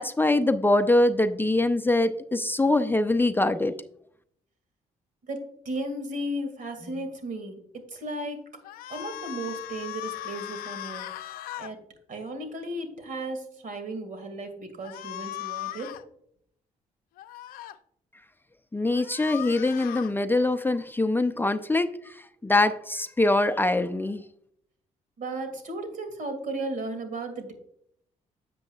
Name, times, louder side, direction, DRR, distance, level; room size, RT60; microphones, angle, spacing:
voice 1, 0.0-3.7 18.7-24.2, left 2 dB, 15° left, 9 dB, 0.6 m, -23 dB
voice 2, 5.2-8.5 8.9-11.3 11.6-11.8 12.1-16.0 25.2-27.5, right 1 dB, 65° right, 7 dB, 2.2 m, -35 dB
sound 1, 8.6-11.7 14.8-16.0 17.2-17.8 18.9-20.1, left 15 dB, 85° left, 0.5 m, -38 dB
10.5 x 7.6 x 2.4 m, 0.68 s
cardioid pair, 70°, 15 cm